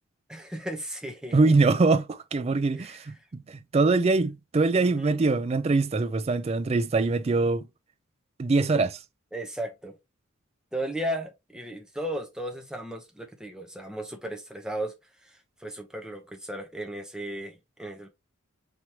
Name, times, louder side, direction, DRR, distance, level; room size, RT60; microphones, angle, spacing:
voice 1, 0.3-1.5 2.8-3.1 4.8-5.2 8.7-8.9 9.3-9.9 10.7-14.9 15.2-18.1, right 1 dB, 5° right, 0.8 m, -35 dB
voice 2, 1.3-7.6 8.4-8.9, right 3 dB, 30° right, 0.3 m, -23 dB
5.0 x 3.0 x 2.9 m
head